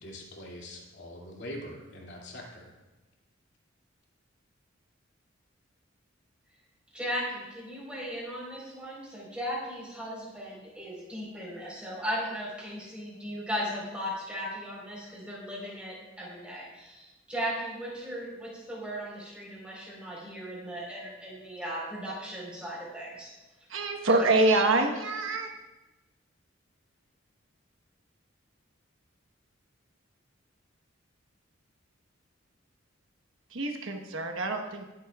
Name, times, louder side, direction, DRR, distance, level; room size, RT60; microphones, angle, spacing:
voice 1, 0.0-2.7, left 1 dB, 60° left, -2 dB, 2.6 m, -43 dB
voice 2, 6.9-23.3, equal, 5° right, -5 dB, 4.0 m, -37 dB
voice 3, 23.7-25.5 33.5-34.9, right 2 dB, 80° right, 4 dB, 1.2 m, -26 dB
20.5 x 8.3 x 2.4 m, 1.1 s
head